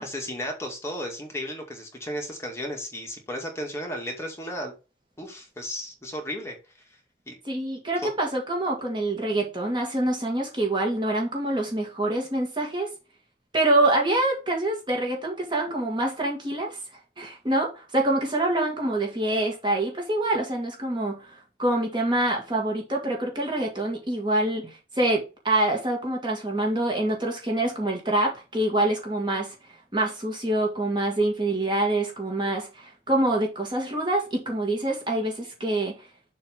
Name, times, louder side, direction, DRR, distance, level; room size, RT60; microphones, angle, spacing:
voice 1, 0.0-4.7 5.2-6.6 7.3-7.4 8.0-8.1, equal, 15° left, 2.1 m, -34 dB
voice 2, 7.4-12.9 13.5-16.8 17.2-29.6 29.9-36.0, right 1 dB, 25° right, 1.8 m, -26 dB
7.4 x 3.2 x 5.8 m
head